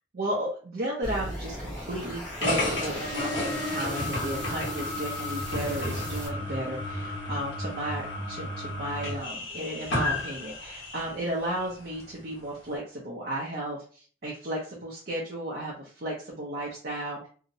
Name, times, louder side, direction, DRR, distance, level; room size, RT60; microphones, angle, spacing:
voice 1, 0.1-17.3, right 1 dB, 55° right, -3 dB, 0.5 m, -34 dB
sound 1, 1.0-6.3, equal, 5° left, 0.6 m, -39 dB
sound 2, 2.4-11.1, left 1 dB, 80° left, 1.1 m, -32 dB
Bass guitar, 3.1-5.8, equal, 45° left, 0.4 m, -41 dB
2.7 x 2.0 x 2.6 m, 0.42 s
head